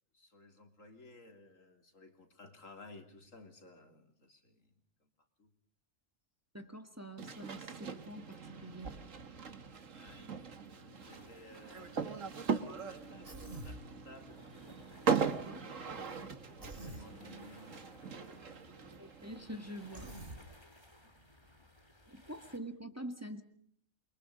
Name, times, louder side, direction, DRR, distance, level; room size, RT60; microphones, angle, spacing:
voice 1, 0.1-4.7 5.0-5.1 5.4-5.5 9.9-10.5 10.8-14.4 15.5-18.2 18.5-18.6 21.0-21.2 21.8-22.1, left 2 dB, 85° left, 5 dB, 3.7 m, -57 dB
voice 2, 6.5-8.9 15.3-15.7 19.0-20.1 22.1-23.4, right 1 dB, 10° right, 8 dB, 1.9 m, -46 dB
sound 1, 7.2-20.1, right 6 dB, 80° right, 2.0 m, -39 dB
sound 2, 11.0-22.6, left 1 dB, 20° left, 3.5 m, -61 dB
Human voice, 13.2-13.8 16.6-17.1 19.9-20.4, right 1 dB, 45° right, 3.3 m, -46 dB
29.0 x 24.0 x 5.1 m, 0.63 s
omnidirectional pair, 1.3 m